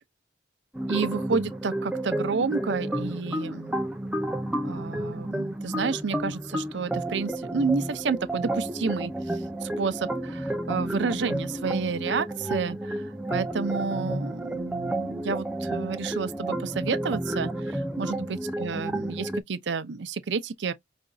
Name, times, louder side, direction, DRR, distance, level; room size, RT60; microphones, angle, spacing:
sound 1, 0.7-19.4, right 1 dB, 5° right, 0.5 m, -31 dB
voice 1, 0.9-3.8 4.6-9.1 9.6-13.0 13.3-20.7, right 5 dB, 75° right, 0.5 m, -30 dB
4.9 x 2.6 x 2.3 m
head